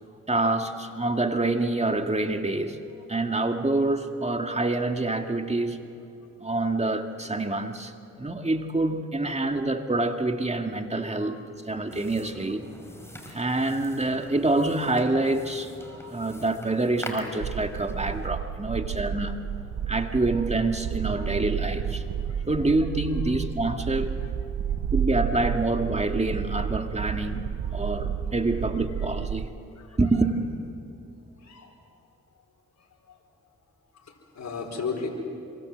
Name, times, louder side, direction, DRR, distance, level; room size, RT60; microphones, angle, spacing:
voice 1, 0.3-2.8 3.1-5.8 6.4-11.4 11.7-12.6 13.3-19.4 19.9-22.0 22.5-24.1 24.9-27.4 27.7-29.5 30.0-30.4, right 2 dB, 20° right, 5 dB, 2.0 m, -26 dB
sound 1, 11.9-18.3, equal, 10° left, 5.4 m, -43 dB
sound 2, 17.4-29.4, right 8 dB, 65° right, 0.9 m, -31 dB
voice 2, 31.4-31.7 33.1-33.2 33.9-35.1, left 5 dB, 60° left, 1 dB, 4.5 m, -36 dB
26.0 x 23.5 x 8.0 m, 2.6 s
cardioid pair, 60°, 31 cm